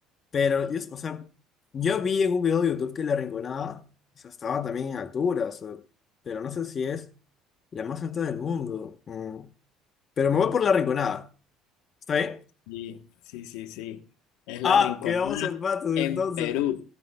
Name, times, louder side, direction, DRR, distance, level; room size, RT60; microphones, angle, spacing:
voice 1, 0.3-1.3 1.7-3.8 4.2-5.8 6.3-7.1 7.7-9.5 10.2-11.3 12.1-12.4 14.6-16.6, left 6 dB, 30° left, 0.9 m, -27 dB
voice 2, 12.7-13.0 13.3-14.0 14.5-15.6 16.0-16.8, left 12 dB, 90° left, 1.1 m, -31 dB
15.5 x 15.0 x 2.2 m
cardioid pair, 140°, 0 cm